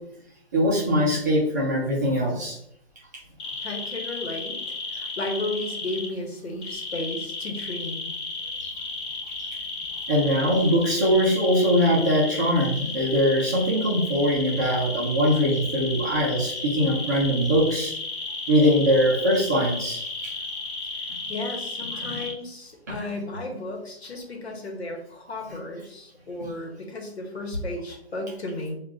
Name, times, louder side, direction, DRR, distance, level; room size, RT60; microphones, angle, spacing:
voice 1, 0.5-2.6 8.6-8.7 9.4-9.5 10.1-17.9 18.5-20.0 22.1-22.2 22.9-23.0, equal, 15° right, -5 dB, 0.5 m, -22 dB
sound 1, 3.4-6.1 6.6-22.3, left 3 dB, 25° left, 1.4 m, -33 dB
voice 2, 3.6-4.6 4.9-8.1 20.8-28.7, left 2 dB, 70° left, 2 dB, 1.2 m, -34 dB
5.8 x 2.4 x 2.3 m, 0.74 s
hypercardioid pair, 150°, 33 cm